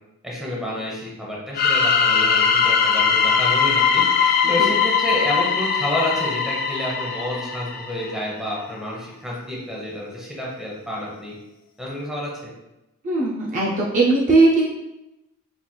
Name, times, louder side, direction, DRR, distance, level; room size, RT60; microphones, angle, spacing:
voice 1, 0.2-11.3 11.8-12.5, left 1 dB, ahead, -5 dB, 0.9 m, -29 dB
sound 1, 1.5-8.2, left 6 dB, 45° left, 0.4 m, -20 dB
voice 2, 13.0-14.7, right 2 dB, 35° right, -4 dB, 0.4 m, -18 dB
4.1 x 3.2 x 2.2 m, 0.95 s
head